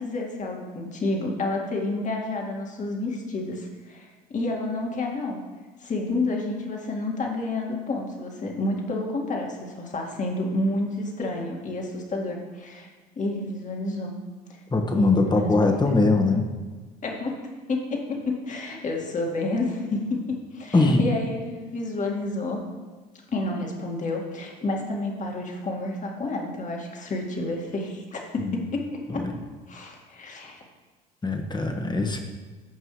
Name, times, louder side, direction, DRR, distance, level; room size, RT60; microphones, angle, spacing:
voice 1, 0.0-5.4 5.8-12.9 13.2-14.1 14.5-14.6 14.9-15.5 15.9-16.2 17.0-17.4 17.7-22.6 23.3-29.2 29.7-30.6, left 2 dB, 35° left, 0 dB, 2.1 m, -30 dB
voice 2, 14.7-16.5 20.7-21.1 28.4-28.5 29.1-29.3 31.2-32.2, left 3 dB, 20° left, 4 dB, 1.5 m, -21 dB
15.0 x 5.4 x 3.2 m, 1.3 s
hypercardioid pair, 70°, 21 cm